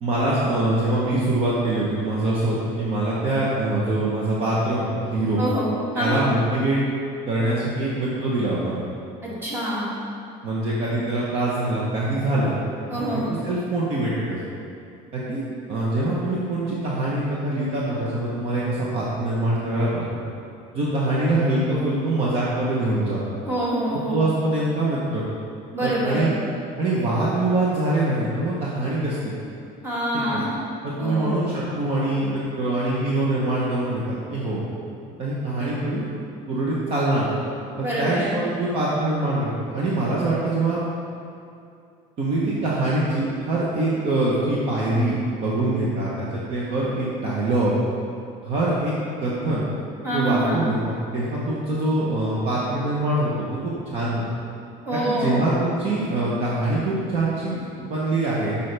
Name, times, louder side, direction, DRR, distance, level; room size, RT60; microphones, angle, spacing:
voice 1, 0.0-5.4 5.9-6.8 7.3-8.8 10.4-12.5 12.9-14.4 15.1-15.4 15.7-20.0 20.7-23.2 24.1-25.2 25.8-26.3 26.8-29.3 30.1-30.4 30.8-34.6 35.2-36.1 36.5-37.3 38.0-40.8 42.2-47.7 48.4-48.9 49.2-49.7 50.1-54.2 54.9-58.6, right 2 dB, 40° right, -6 dB, 0.9 m, -24 dB
voice 2, 5.4-6.2 9.2-9.9 12.9-13.3 23.4-24.3 25.7-26.4 29.8-30.6 31.0-31.3 37.8-38.4 50.0-50.7 54.8-55.5, right 1 dB, 15° right, -7 dB, 1.6 m, -26 dB
8.4 x 5.4 x 3.3 m, 2.5 s
cardioid pair, 170°, 16 cm